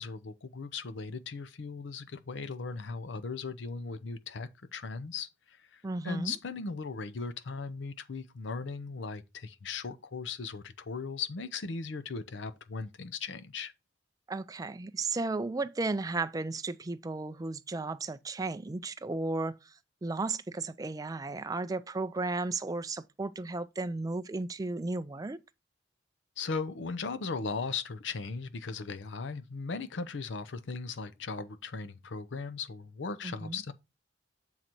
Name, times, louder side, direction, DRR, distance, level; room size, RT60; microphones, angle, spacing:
voice 1, 0.0-13.7 26.4-33.7, left 4 dB, 80° left, 0.6 m, -38 dB
voice 2, 5.8-6.3 14.3-19.7 20.0-25.4 33.2-33.6, right 3 dB, 20° right, 0.4 m, -34 dB
7.5 x 4.0 x 4.4 m
head